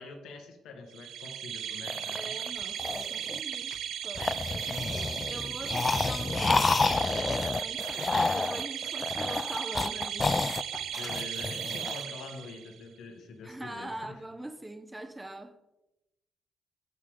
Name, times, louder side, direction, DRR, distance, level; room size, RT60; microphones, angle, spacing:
voice 1, 0.0-2.2 11.0-14.2, left 3 dB, 80° left, 1.6 m, -45 dB
sound 1, 0.9-12.8, right 10 dB, 75° right, 0.7 m, -36 dB
sound 2, 1.9-3.7 4.1-12.0, left 3 dB, 25° left, 0.3 m, -30 dB
voice 2, 2.2-3.8 4.0-7.9 8.3-10.4 13.4-15.6, right 1 dB, 10° right, 0.8 m, -43 dB
14.5 x 5.0 x 3.7 m
cardioid pair, 90°, 0 cm